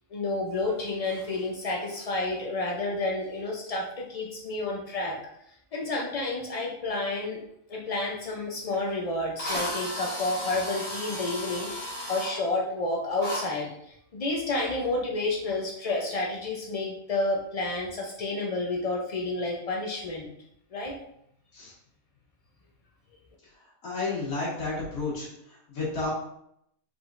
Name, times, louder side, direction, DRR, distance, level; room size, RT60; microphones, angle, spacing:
voice 1, 0.1-5.2 5.7-7.4 7.7-20.3 20.7-20.9, left 2 dB, 65° left, -1 dB, 0.3 m, -30 dB
Drill, 8.7-8.8 9.4-12.3 13.2-13.4, equal, 50° left, 1.8 m, -34 dB
voice 2, 23.8-26.1, left 3 dB, 85° left, -6 dB, 2.2 m, -32 dB
4.8 x 3.7 x 2.5 m, 0.74 s
omnidirectional pair, 1.4 m